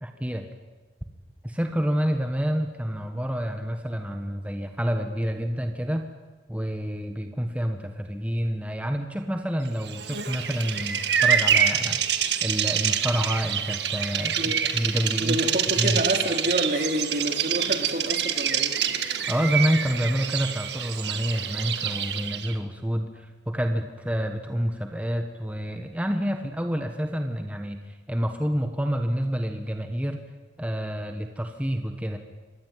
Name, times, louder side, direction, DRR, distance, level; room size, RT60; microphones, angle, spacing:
voice 1, 0.0-0.4 1.4-6.1 6.5-12.0 12.4-15.4 15.8-16.0 19.3-30.2 30.6-32.2, equal, 10° right, 5 dB, 1.4 m, -28 dB
Bird vocalization bird call bird song, 9.9-22.6, right 8 dB, 65° right, 2.0 m, -26 dB
voice 2, 15.2-18.8, right 1 dB, 50° right, 5 dB, 3.0 m, -28 dB
25.5 x 20.5 x 9.3 m, 1.3 s
head